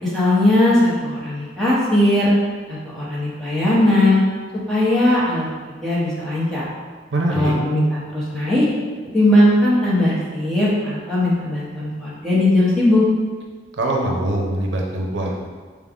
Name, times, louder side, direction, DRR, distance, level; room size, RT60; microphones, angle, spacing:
voice 1, 0.0-2.3 2.7-4.2 4.7-5.5 5.8-6.7 7.3-8.7 9.1-13.0, left 1 dB, ahead, -9 dB, 1.0 m, -18 dB
voice 2, 7.1-7.5 13.8-15.5, right 1 dB, 80° right, -1 dB, 0.6 m, -22 dB
4.6 x 2.4 x 3.6 m, 1.5 s
head